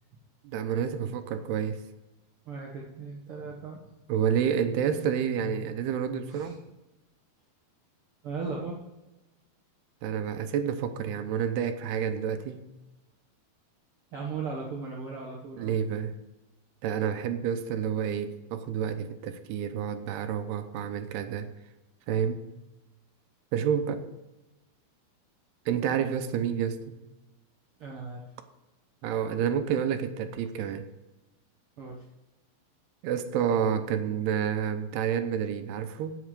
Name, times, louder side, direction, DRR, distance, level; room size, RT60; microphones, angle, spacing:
voice 1, 0.4-1.8 4.1-6.6 10.0-12.7 15.6-16.2 16.8-21.5 22.1-22.4 23.5-24.1 25.7-27.0 29.0-30.9 33.0-36.2, right 8 dB, 80° right, 2.8 m, -29 dB
voice 2, 2.4-3.8 6.3-6.5 8.2-8.8 14.1-15.8 27.8-28.2 31.8-32.0, right 4 dB, 60° right, 1.4 m, -37 dB
9.4 x 8.2 x 6.7 m
omnidirectional pair, 4.7 m